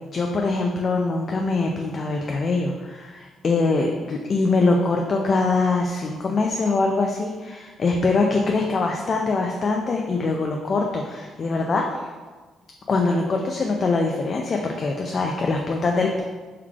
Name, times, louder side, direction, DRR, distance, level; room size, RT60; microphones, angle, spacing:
voice 1, 0.1-11.9 12.9-16.2, left 3 dB, 45° left, 1 dB, 0.3 m, -23 dB
3.7 x 3.2 x 2.3 m, 1.4 s
cardioid pair, 90°, 0 cm